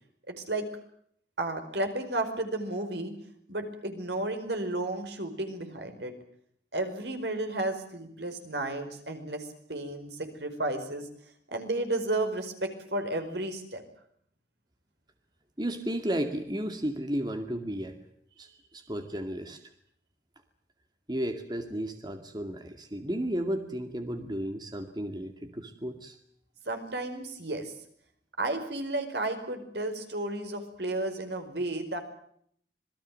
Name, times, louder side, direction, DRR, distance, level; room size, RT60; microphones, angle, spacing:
voice 1, 0.3-0.7 1.4-3.1 3.5-6.1 6.7-11.1 11.5-13.8 26.6-27.7 28.4-32.0, right 2 dB, 75° right, 6 dB, 5.0 m, -33 dB
voice 2, 15.6-18.0 18.4-18.5 18.7-19.6 21.1-26.2, right 1 dB, 25° right, 6 dB, 2.2 m, -33 dB
26.5 x 21.0 x 7.6 m, 0.66 s
head